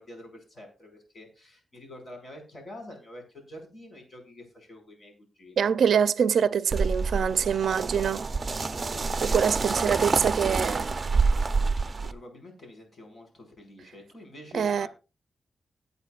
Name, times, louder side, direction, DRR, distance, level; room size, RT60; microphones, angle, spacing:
voice 1, 0.0-5.7 8.5-10.8 11.8-14.9, left 1 dB, 50° left, 5.1 m, -46 dB
voice 2, 5.6-8.3 9.2-10.9 14.5-14.9, right 7 dB, 85° right, 0.4 m, -24 dB
sound 1, 6.7-12.1, right 4 dB, 40° right, 0.6 m, -27 dB
19.5 x 8.1 x 2.4 m
wide cardioid pair, 100°, 0 cm